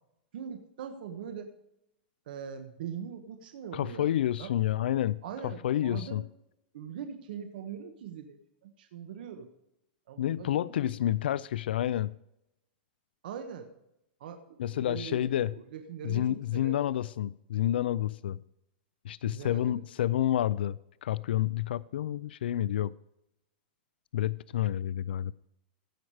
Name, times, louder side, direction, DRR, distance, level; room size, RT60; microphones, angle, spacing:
voice 1, 0.3-1.5 2.3-4.1 4.4-4.5 5.2-6.2 6.7-9.5 10.1-10.9 13.2-13.7 14.2-16.8 19.2-19.8, right 7 dB, 65° right, 1.3 m, -42 dB
voice 2, 3.7-6.2 10.2-12.1 14.6-15.5 16.0-18.4 19.0-22.9 24.1-25.3, left 12 dB, 85° left, 0.4 m, -29 dB
16.0 x 6.0 x 4.8 m
supercardioid pair, 165°, 5 cm